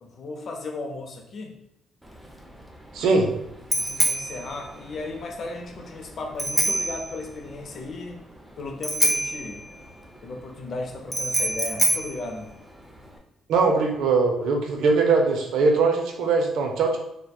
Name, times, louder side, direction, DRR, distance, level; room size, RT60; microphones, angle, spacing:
voice 1, 0.0-1.6 3.0-3.2 3.7-8.2 8.6-9.6 10.2-12.5, left 2 dB, 55° left, 3 dB, 0.5 m, -35 dB
Bicycle bell, 2.0-13.2, right 1 dB, 5° right, 0.4 m, -28 dB
voice 2, 2.9-3.3 13.5-17.0, right 4 dB, 80° right, 2 dB, 0.4 m, -21 dB
2.6 x 2.1 x 2.2 m, 0.81 s
cardioid pair, 90°, 0 cm